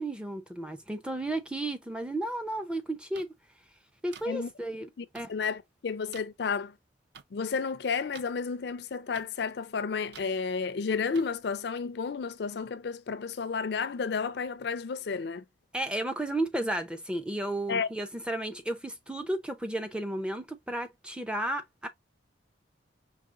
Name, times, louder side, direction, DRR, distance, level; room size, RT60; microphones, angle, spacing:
voice 1, 0.0-3.3 4.0-5.3 15.7-21.9, right 1 dB, 5° right, 0.5 m, -33 dB
sound 1, 3.1-3.2 4.1-4.3 5.1-5.2 6.1-6.2 7.1-7.2 8.1-8.3 9.1-9.3 10.1-10.3 11.1-11.3, right 8 dB, 60° right, 0.4 m, -48 dB
voice 2, 5.0-6.7 7.3-15.4 17.7-17.9, left 5 dB, 55° left, 0.4 m, -32 dB
4.8 x 3.2 x 2.4 m
head